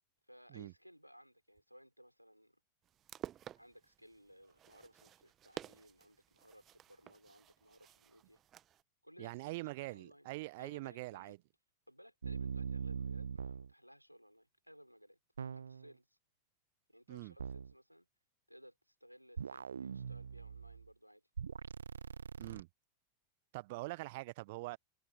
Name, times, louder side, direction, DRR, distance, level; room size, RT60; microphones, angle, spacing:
voice 1, 0.3-2.6 3.6-8.4 9.0-10.3 10.6-11.4 11.9-15.2 15.5-16.2 16.9-18.1 18.5-21.3, equal, 90° right, 5.1 m, -60 dB
sound 1, 2.8-8.8, right 11 dB, 30° right, 1.3 m, -52 dB
voice 2, 9.2-11.4 17.1-17.3 22.4-22.7 23.5-24.8, right 22 dB, 50° right, 1.0 m, -43 dB
sound 2, 12.2-13.7 15.4-15.9 17.4-17.7 19.4-20.9 21.4-22.6, right 6 dB, 70° right, 0.5 m, -42 dB
figure-of-eight pair, 90°, 0 cm